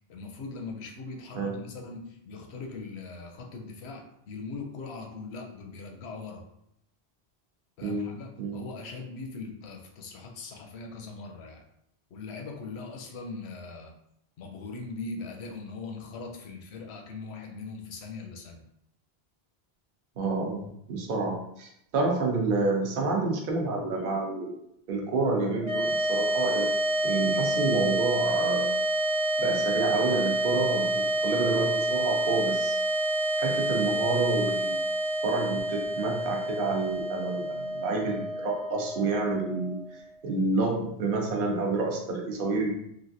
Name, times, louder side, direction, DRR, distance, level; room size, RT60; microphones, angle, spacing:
voice 1, 0.1-6.4 7.8-11.6 12.1-13.9 14.4-18.6, left 4 dB, 85° left, 2 dB, 0.9 m, -40 dB
voice 2, 7.8-8.1 8.4-8.6 20.2-24.5 24.9-26.7 27.0-28.7 29.4-32.8 33.4-34.8 35.2-39.8 40.2-42.7, right 3 dB, 60° right, 0 dB, 0.8 m, -29 dB
sound 1, 25.6-40.0, right 1 dB, 85° right, 1.1 m, -28 dB
3.2 x 2.4 x 2.6 m, 0.75 s
omnidirectional pair, 1.1 m